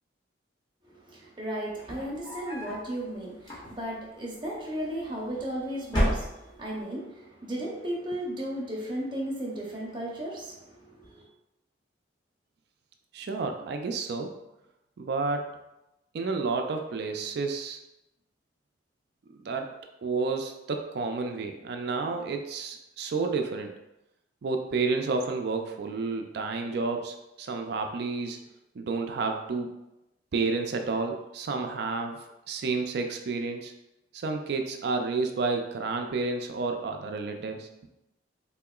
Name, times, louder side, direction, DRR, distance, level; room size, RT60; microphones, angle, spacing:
voice 1, 0.8-11.3, right 1 dB, 25° right, -4 dB, 0.7 m, -35 dB
sound 1, 1.7-2.9 3.4-4.1 5.0-5.5 5.8-6.8, equal, 20° left, 0.8 m, -31 dB
voice 2, 13.1-14.3 15.0-15.5 16.1-17.8 19.3-19.7 20.0-23.7 24.4-28.4 28.8-29.7 30.3-32.2 32.5-33.7 34.1-37.7, right 4 dB, 55° right, 4 dB, 0.3 m, -30 dB
3.6 x 2.8 x 2.3 m, 0.93 s
head